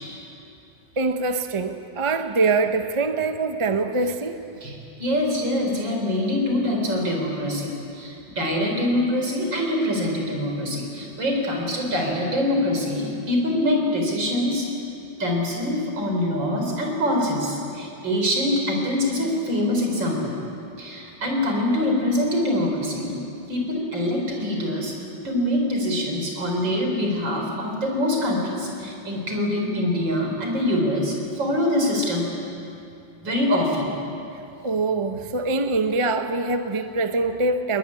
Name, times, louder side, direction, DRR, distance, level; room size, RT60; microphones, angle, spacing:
voice 1, 1.0-4.4 34.6-37.8, right 3 dB, 25° right, 7 dB, 0.6 m, -24 dB
voice 2, 4.6-14.7 15.2-20.4 20.8-23.2 23.5-24.9 25.2-32.3 33.2-33.9, left 1 dB, 65° right, 1 dB, 5.2 m, -24 dB
21.0 x 21.0 x 9.8 m, 2.7 s
omnidirectional pair, 2.2 m